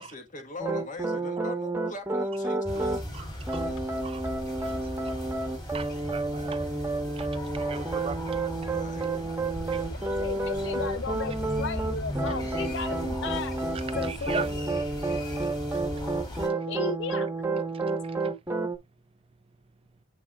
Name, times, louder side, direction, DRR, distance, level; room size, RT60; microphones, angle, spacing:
voice 1, 0.0-3.0 8.7-9.5, left 3 dB, 35° left, 1.5 m, -42 dB
sound 1, 0.6-3.0 3.5-18.8, right 2 dB, 10° right, 1.3 m, -30 dB
sound 2, 2.6-16.5, equal, 20° left, 3.2 m, -37 dB
voice 2, 3.1-3.7 4.0-4.3 4.6-5.2 5.5-6.8 7.1-9.2 9.7-9.8 13.7-14.5 15.7-15.8 17.7-18.2, right 5 dB, 25° right, 0.3 m, -40 dB
voice 3, 9.9-13.6 14.0-14.6 16.7-17.3, left 4 dB, 60° left, 0.5 m, -35 dB
8.7 x 5.8 x 2.4 m
head